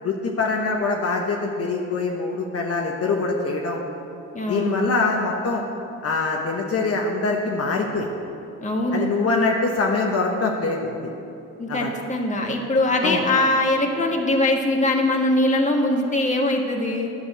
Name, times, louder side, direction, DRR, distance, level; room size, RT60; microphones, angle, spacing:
voice 1, 0.0-3.8 4.5-5.6 6.0-8.1 8.9-11.1 11.7-11.9 13.0-13.2, left 3 dB, 50° left, 0 dB, 1.1 m, -24 dB
voice 2, 4.3-4.9 8.6-9.1 11.6-17.1, left 1 dB, 25° left, 1 dB, 1.6 m, -22 dB
10.0 x 7.0 x 8.0 m, 2.9 s
cardioid pair, 90°, 30 cm